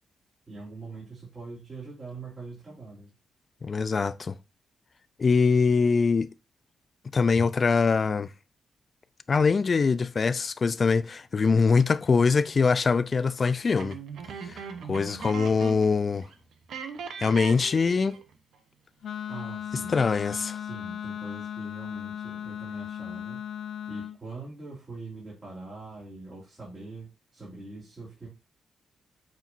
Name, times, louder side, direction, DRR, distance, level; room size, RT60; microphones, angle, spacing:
voice 1, 0.5-3.1 19.3-20.0 20.5-23.4 23.9-28.3, right 3 dB, 25° right, 3.4 m, -43 dB
voice 2, 3.6-4.3 5.2-6.3 7.1-8.3 9.3-14.0 14.5-16.3 17.2-18.2 19.9-20.6, left 5 dB, 40° left, 0.4 m, -23 dB
sound 1, 13.8-16.4 16.7-18.3, right 6 dB, 75° right, 0.9 m, -39 dB
Wind instrument woodwind instrument, 19.0-24.2, left 9 dB, 65° left, 1.0 m, -36 dB
8.1 x 4.5 x 2.6 m
cardioid pair, 115°, 0 cm